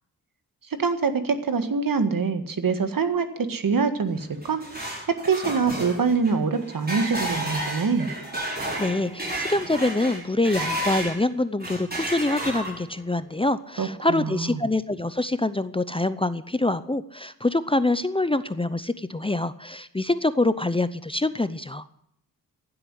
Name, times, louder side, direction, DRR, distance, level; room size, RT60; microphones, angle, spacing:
voice 1, 0.8-4.6 5.1-8.1 13.8-14.6, right 5 dB, 60° right, 9 dB, 1.8 m, -24 dB
sound 1, 4.2-11.2 11.6-13.0, right 1 dB, 25° right, 6.4 m, -32 dB
voice 2, 8.8-21.9, left 2 dB, 15° left, 13 dB, 0.7 m, -25 dB
15.5 x 8.0 x 9.8 m, 0.74 s
cardioid pair, 70°, 37 cm